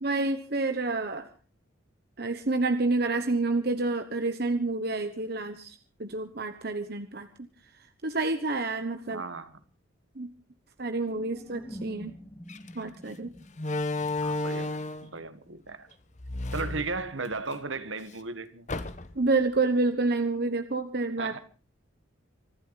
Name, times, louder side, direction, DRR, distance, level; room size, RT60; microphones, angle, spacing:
voice 1, 0.0-1.3 2.2-7.3 8.0-9.2 10.2-10.3 10.8-12.1 12.7-13.3 19.2-21.4, right 3 dB, 50° right, 1.1 m, -28 dB
voice 2, 9.1-9.5 14.2-15.9 16.5-18.7 21.2-21.4, right 3 dB, 70° right, 1.7 m, -36 dB
sound 1, 11.0-15.6, equal, 10° left, 2.3 m, -47 dB
Slam, 12.5-12.7 13.6-15.1 16.2-17.6 17.9-18.0 18.7-19.3, left 2 dB, 35° left, 1.1 m, -32 dB
25.5 x 12.0 x 4.1 m
head